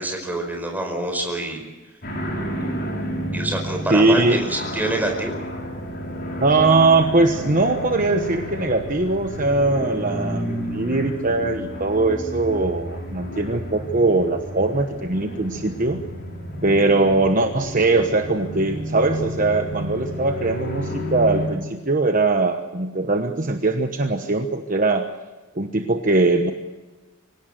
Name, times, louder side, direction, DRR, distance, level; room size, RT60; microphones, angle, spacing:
voice 1, 0.0-1.6 3.3-5.4, right 1 dB, 10° right, 2 dB, 4.9 m, -26 dB
sound 1, 2.0-21.5, equal, 45° left, 6.2 m, -31 dB
voice 2, 3.9-4.4 6.4-16.0 16.6-25.1 25.5-26.5, right 3 dB, 40° right, 5 dB, 1.2 m, -21 dB
25.0 x 17.5 x 7.8 m, 1.2 s
head